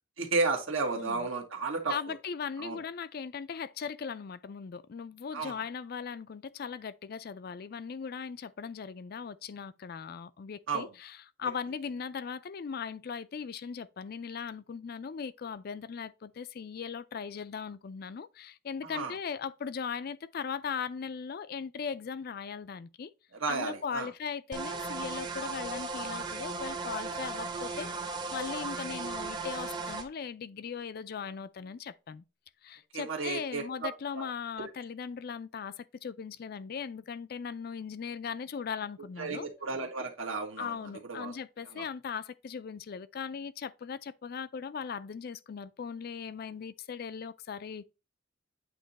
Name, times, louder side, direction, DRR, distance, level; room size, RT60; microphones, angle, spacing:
voice 1, 0.2-1.9 2.6-2.8 5.3-5.5 10.7-10.9 18.8-19.1 23.4-24.1 28.5-28.7 32.9-33.6 34.1-34.2 34.6-34.7 39.2-40.7 41.1-41.3 41.7-41.8, right 3 dB, 80° right, 1.5 m, -33 dB
voice 2, 1.0-1.3 1.9-23.1 23.5-27.9 28.3-32.2 32.6-39.5 40.6-47.9, left 6 dB, 45° left, 0.3 m, -39 dB
sound 1, 24.5-30.0, right 3 dB, 20° right, 0.8 m, -36 dB
8.6 x 3.0 x 4.0 m
head